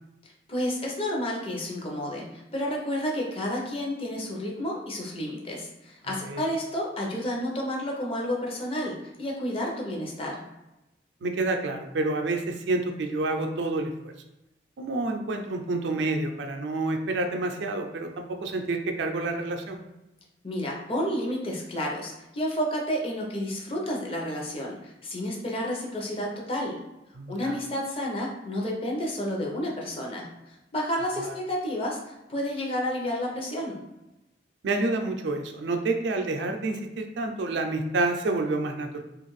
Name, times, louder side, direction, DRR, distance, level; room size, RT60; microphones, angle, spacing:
voice 1, 0.5-10.4 20.4-26.8 27.3-33.8, equal, 30° left, -2 dB, 0.6 m, -31 dB
voice 2, 6.0-6.5 11.2-14.1 14.8-19.8 27.2-27.6 31.2-31.3 34.6-39.0, right 2 dB, 85° right, 4 dB, 0.4 m, -28 dB
2.5 x 2.4 x 3.1 m, 0.95 s
head